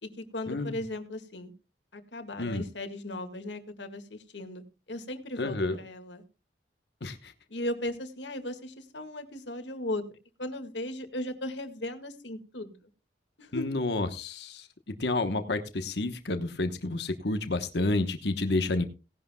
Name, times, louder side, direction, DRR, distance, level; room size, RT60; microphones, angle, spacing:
voice 1, 0.0-1.5 1.9-4.6 4.9-6.2 7.5-12.7 13.4-13.7, left 1 dB, 90° left, 7 dB, 2.0 m, -37 dB
voice 2, 5.4-5.8 7.0-7.3 13.5-14.7 15.0-18.8, left 2 dB, 70° left, 8 dB, 1.2 m, -30 dB
18.0 x 11.0 x 2.3 m, 0.31 s
head